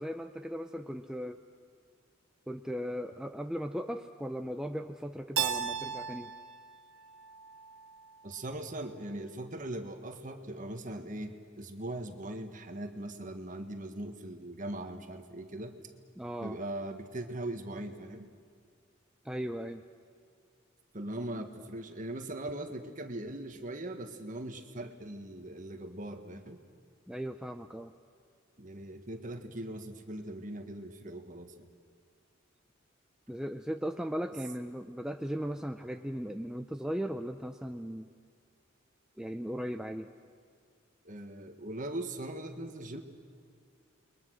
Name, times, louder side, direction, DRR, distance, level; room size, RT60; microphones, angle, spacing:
voice 1, 0.0-1.4 2.5-6.3 16.2-16.6 19.2-19.8 27.1-27.9 33.3-38.1 39.2-40.1, equal, 5° right, 5 dB, 0.5 m, -37 dB
Keyboard (musical), 5.4-8.2, right 8 dB, 85° right, 1.1 m, -36 dB
voice 2, 8.2-15.8 16.4-18.3 20.9-26.6 28.6-31.7 41.0-43.0, right 1 dB, 40° right, 6 dB, 1.6 m, -40 dB
29.0 x 22.5 x 6.4 m, 2.2 s
head